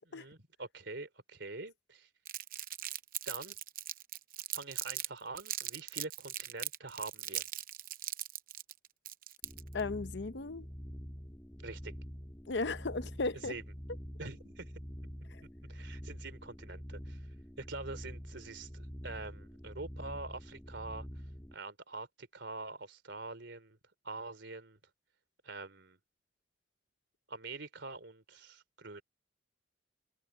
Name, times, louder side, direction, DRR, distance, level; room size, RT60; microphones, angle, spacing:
voice 1, 0.0-2.1 3.2-3.6 4.5-7.4 11.6-11.9 13.3-13.6 14.2-14.7 15.7-17.2 17.6-21.1 21.5-23.8 24.0-24.8 25.4-26.0 27.3-29.0, right 3 dB, 65° right, 3.3 m, -45 dB
Crumpling crinkling, 2.3-5.1 5.4-9.8, right 13 dB, 45° right, 0.7 m, -39 dB
sound 1, 9.4-21.5, equal, 10° left, 1.5 m, -46 dB
voice 2, 9.7-10.7 12.5-13.5 15.3-15.4, left 3 dB, 60° left, 0.7 m, -36 dB
head